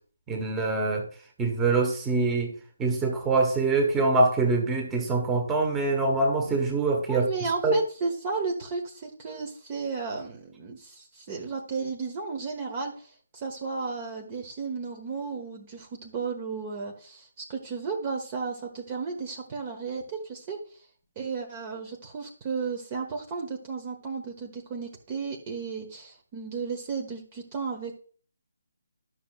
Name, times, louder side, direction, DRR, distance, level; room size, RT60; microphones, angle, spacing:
voice 1, 0.3-1.1 1.4-2.5 2.8-7.3 7.6-7.7, right 3 dB, 10° right, 2 dB, 1.5 m, -24 dB
voice 2, 7.1-20.9 21.2-28.0, right 4 dB, 25° right, 2 dB, 1.2 m, -34 dB
11.5 x 6.4 x 2.4 m, 0.42 s
figure-of-eight pair, 150°, 0 cm